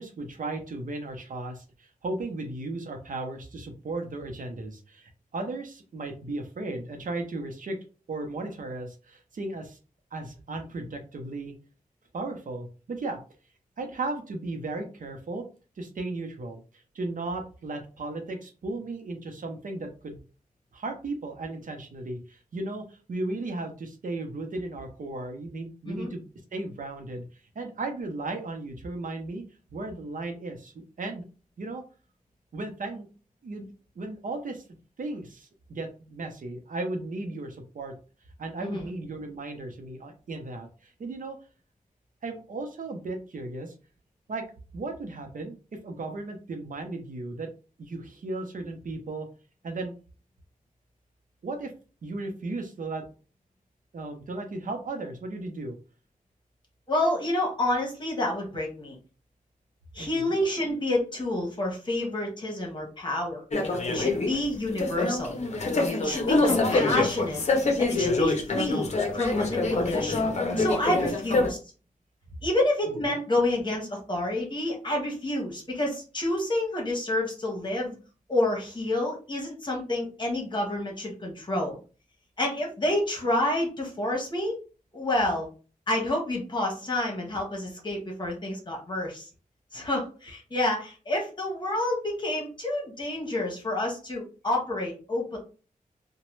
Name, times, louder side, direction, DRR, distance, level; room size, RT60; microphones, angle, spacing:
voice 1, 0.0-7.8 8.1-9.8 10.1-11.5 12.1-13.2 13.8-15.4 15.8-20.2 20.7-26.2 26.5-27.2 27.5-29.4 29.7-31.2 31.6-31.8 32.5-33.1 33.4-33.7 34.0-34.6 35.0-37.9 38.4-41.4 42.2-43.7 44.3-44.4 44.7-45.5 45.8-47.5 47.8-49.3 49.6-49.9 51.4-51.7 52.0-53.0 53.9-55.8 60.0-60.4 63.9-64.1 70.9-71.1, right 2 dB, 65° right, 4 dB, 0.6 m, -35 dB
voice 2, 56.9-59.0 59.9-65.4 66.0-67.4 67.8-68.9 69.1-71.6 72.4-78.0 78.3-81.8 82.4-84.6 84.9-85.5 85.9-89.3 89.7-95.4, left 1 dB, 35° left, -1 dB, 1.1 m, -29 dB
sound 1, 63.5-71.5, left 3 dB, 50° left, 0.6 m, -25 dB
2.9 x 2.1 x 3.1 m, 0.35 s
wide cardioid pair, 120°, 14 cm